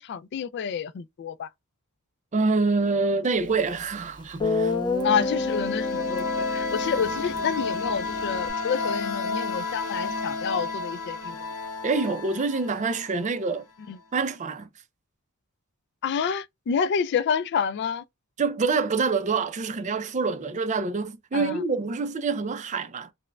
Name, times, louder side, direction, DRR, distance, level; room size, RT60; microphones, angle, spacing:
voice 1, 0.0-1.5 5.0-11.4 13.9-14.0 16.0-18.0 21.3-21.6, left 7 dB, 50° left, 0.3 m, -28 dB
voice 2, 2.3-4.7 11.8-13.7 14.1-14.7 18.4-23.1, right 4 dB, 35° right, 0.4 m, -26 dB
Guitar, 3.8-3.9 4.4-8.5, left 3 dB, 20° left, 0.9 m, -29 dB
sound 1, 5.0-13.6, left 3 dB, 90° left, 0.9 m, -31 dB
4.4 x 2.1 x 2.2 m
head